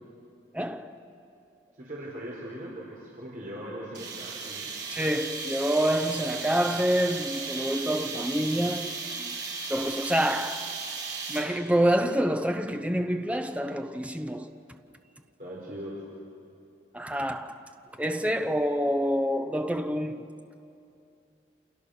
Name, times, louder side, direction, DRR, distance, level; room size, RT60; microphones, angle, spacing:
voice 1, 0.5-1.0 4.9-8.9 9.2-9.4 9.7-10.7 11.3-14.5 16.9-17.6 18.0-20.4, equal, 5° right, 0.8 m, -27 dB
voice 2, 1.8-4.7 15.4-16.0, right 1 dB, 50° right, 4.6 m, -39 dB
sound 1, 3.9-11.7, right 4 dB, 70° right, 4.5 m, -36 dB
29.5 x 28.0 x 6.6 m
head